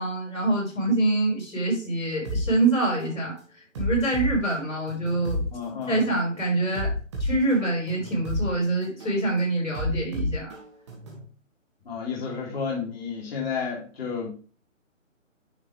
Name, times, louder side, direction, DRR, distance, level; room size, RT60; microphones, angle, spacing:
voice 1, 0.0-5.4 5.9-6.9 7.2-10.6, right 2 dB, 90° left, 0 dB, 4.4 m, -25 dB
sound 1, 2.2-2.5 3.0-3.2 3.7-5.5 6.0-6.2 6.7-8.5 9.0-9.2 9.7-11.2, left 1 dB, 20° right, 1.5 m, -30 dB
voice 2, 5.5-6.0 11.8-14.3, left 6 dB, 50° left, -5 dB, 3.3 m, -31 dB
9.7 x 4.9 x 3.1 m, 0.38 s
hypercardioid pair, 160°, 39 cm